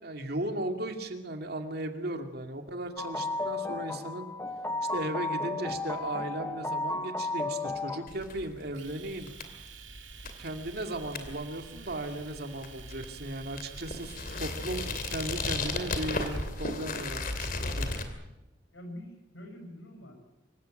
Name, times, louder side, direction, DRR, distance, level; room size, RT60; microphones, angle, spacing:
voice 1, 0.0-4.3 4.9-9.3 10.4-17.9, right 1 dB, 55° right, 5 dB, 2.4 m, -36 dB
sound 1, 3.0-8.1, left 2 dB, 15° left, 1.2 m, -33 dB
sound 2, 8.1-18.1, left 3 dB, 50° left, 2.7 m, -36 dB
Domestic sounds home sounds, 8.7-16.5, right 10 dB, 85° right, 2.3 m, -50 dB
voice 2, 18.7-20.1, left 1 dB, 75° left, 4 dB, 6.9 m, -45 dB
25.5 x 15.5 x 8.9 m, 0.96 s
head